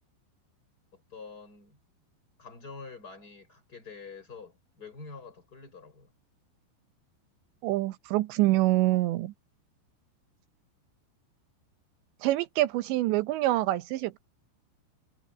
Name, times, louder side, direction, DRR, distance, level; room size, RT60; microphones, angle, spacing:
voice 1, 0.9-1.8 2.4-6.1, left 4 dB, 20° left, 5.3 m, -46 dB
voice 2, 7.6-9.3 12.2-14.2, right 16 dB, 75° right, 3.1 m, -26 dB
omnidirectional pair, 5.4 m